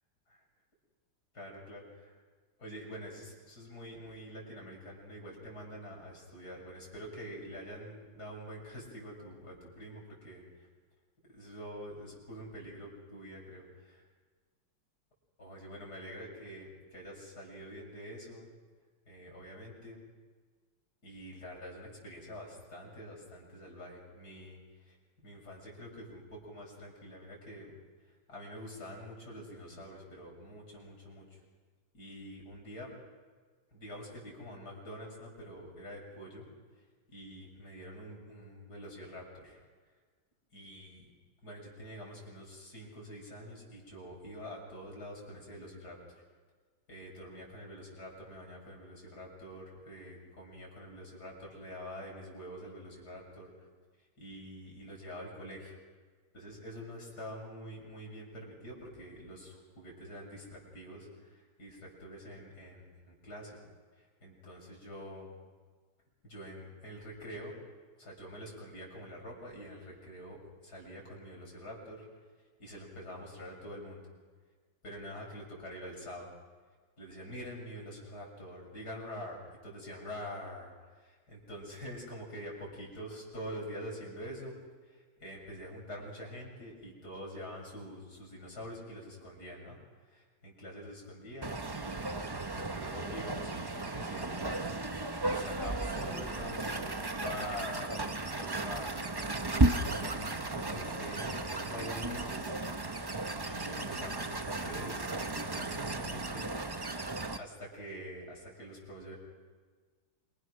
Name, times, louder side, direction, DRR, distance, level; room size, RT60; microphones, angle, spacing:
voice 1, 1.3-2.2 2.6-10.7 11.2-14.0 15.4-18.5 19.1-20.0 21.0-25.0 25.2-27.7 28.3-31.2 31.9-32.9 33.7-36.5 37.1-39.6 40.5-41.1 41.4-46.2 46.9-53.5 54.2-55.8 56.3-63.6 64.2-65.3 66.2-67.5 68.0-72.1 72.6-74.0 74.8-76.3 77.0-84.6 84.9-89.8 90.1-94.7 95.3-99.1 99.8-102.6 103.4-106.5 107.4-109.1, equal, 55° left, -2 dB, 7.6 m, -46 dB
sound 1, 91.4-107.4, right 2 dB, 35° right, 0.3 m, -34 dB
27.0 x 25.0 x 6.5 m, 1.5 s
omnidirectional pair, 2.0 m